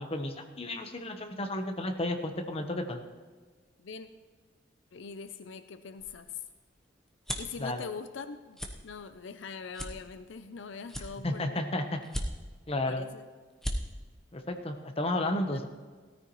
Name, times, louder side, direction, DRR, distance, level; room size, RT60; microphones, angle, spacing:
voice 1, 0.0-3.0 7.6-7.8 11.2-12.0 12.7-13.0 14.3-15.7, left 1 dB, 30° left, 4 dB, 1.0 m, -32 dB
voice 2, 4.9-6.4 7.4-11.6 12.7-13.2, left 5 dB, 75° left, 10 dB, 0.5 m, -42 dB
sound 1, 6.0-7.6 8.1-8.3 8.5-8.7 9.2-9.3 9.7-10.5 10.9-11.6 12.0-12.7 13.1-13.2 13.5-13.8, equal, ahead, 1.0 m, -36 dB
17.0 x 13.5 x 3.1 m, 1.4 s
head